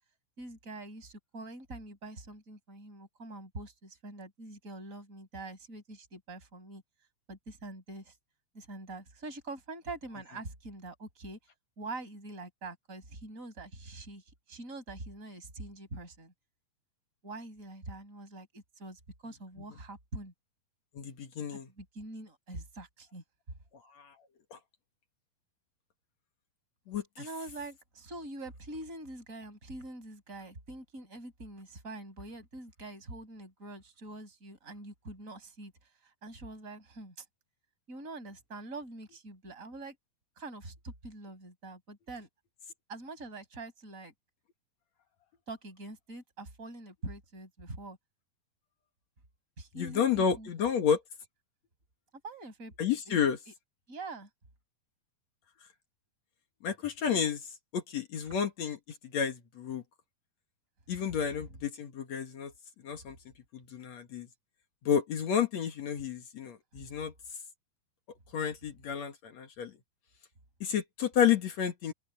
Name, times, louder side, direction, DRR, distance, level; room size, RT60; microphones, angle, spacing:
voice 1, 0.4-6.8 7.3-8.2 8.5-11.4 11.8-16.3 17.2-20.3 21.5-23.2 27.2-37.3 37.9-40.0 40.4-42.3 42.9-44.1 45.5-48.0 49.6-50.5 52.2-52.7 53.1-53.2 53.5-53.6 53.9-54.3, right 2 dB, 20° right, 7.0 m, -44 dB
voice 2, 21.0-21.7 24.0-24.1 24.5-24.6 26.9-27.0 49.7-51.0 52.8-53.4 56.6-57.4 57.7-58.8 59.1-59.8 60.9-62.5 62.8-63.2 63.5-64.3 64.8-67.1 68.3-69.7 70.6-71.9, left 8 dB, 55° left, 2.4 m, -30 dB
open air
omnidirectional pair, 4.4 m